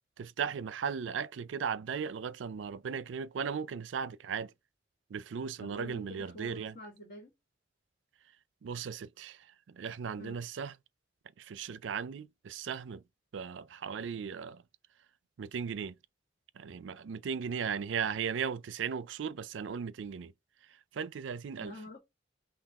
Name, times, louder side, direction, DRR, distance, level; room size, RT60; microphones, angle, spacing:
voice 1, 0.2-4.5 5.1-6.8 8.6-9.4 9.7-10.7 11.4-13.0 13.3-14.6 15.4-16.0 16.6-20.3 20.9-21.7, right 6 dB, 80° right, 0.4 m, -37 dB
voice 2, 5.6-7.3 10.2-10.4 21.6-22.0, left 1 dB, 45° left, 1.6 m, -47 dB
5.8 x 2.3 x 3.5 m
head